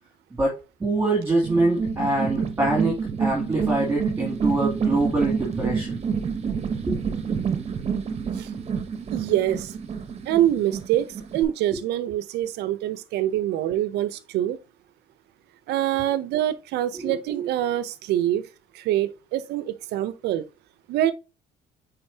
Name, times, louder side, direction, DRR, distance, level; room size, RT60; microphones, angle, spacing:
voice 1, 0.4-2.9 3.2-6.0 6.9-7.0 16.9-17.2, right 2 dB, 15° right, 2.7 m, -24 dB
sound 1, 1.4-11.4, right 6 dB, 40° right, 1.1 m, -28 dB
voice 2, 9.1-9.7 10.3-11.1 11.3-14.6 15.7-18.4 18.7-20.4 20.9-21.1, right 12 dB, 80° right, 0.7 m, -25 dB
8.8 x 4.1 x 2.8 m
cardioid pair, 110°, 17 cm